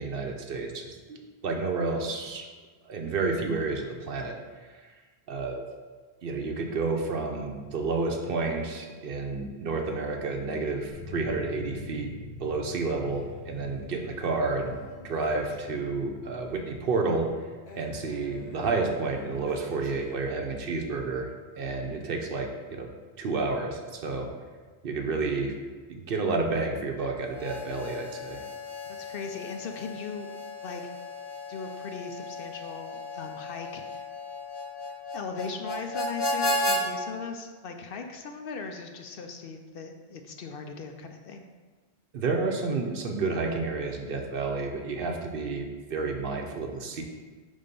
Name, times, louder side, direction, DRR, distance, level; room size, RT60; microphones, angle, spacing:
voice 1, 0.0-2.5 2.8-4.9 5.3-5.6 6.2-12.1 12.4-14.8 15.0-17.3 17.7-22.9 23.2-24.3 24.8-25.6 25.9-28.4 42.1-47.0, right 3 dB, 60° right, 2 dB, 0.9 m, -30 dB
sound 1, 10.9-27.6, left 3 dB, 15° left, 0.9 m, -49 dB
Male speech man speaking, 13.1-16.1 17.7-20.6, left 2 dB, 80° left, 1.2 m, -49 dB
Harmonica, 27.3-36.8, left 1 dB, 30° left, 0.5 m, -34 dB
voice 2, 28.9-30.3 30.6-30.8 31.5-34.0 35.1-41.4, left 5 dB, 65° left, 4 dB, 0.7 m, -39 dB
5.5 x 3.6 x 5.2 m, 1.4 s
omnidirectional pair, 1.1 m